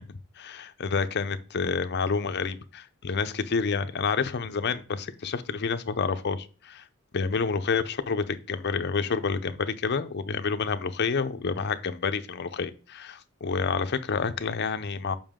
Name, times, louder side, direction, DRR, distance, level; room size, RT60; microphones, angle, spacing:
voice 1, 0.4-6.8 7.1-15.1, left 5 dB, 55° left, 0.6 m, -29 dB
7.1 x 5.4 x 3.6 m
head